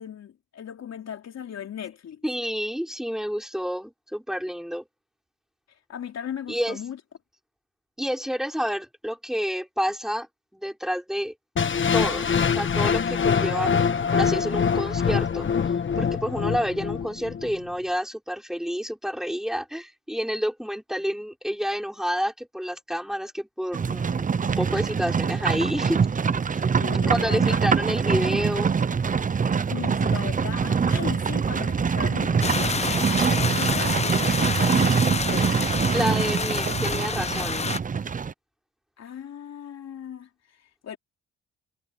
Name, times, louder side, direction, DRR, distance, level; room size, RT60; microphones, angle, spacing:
voice 1, 0.0-2.2 5.9-7.0 26.8-27.6 29.7-35.6 39.0-41.0, left 9 dB, 60° left, 3.4 m, -37 dB
voice 2, 2.2-4.9 6.5-6.8 8.0-10.3 10.5-11.3 11.9-15.5 16.0-24.3 24.6-26.1 26.5-26.6 27.1-28.7 35.9-37.7, equal, ahead, 5.5 m, -29 dB
sound 1, 11.6-17.6, left 6 dB, 40° left, 1.3 m, -24 dB
Livestock farm animals working animals, 23.7-38.3, right 6 dB, 25° right, 0.7 m, -24 dB
sound 2, 32.4-37.8, left 5 dB, 20° left, 0.6 m, -28 dB
cardioid pair, 90°, 30 cm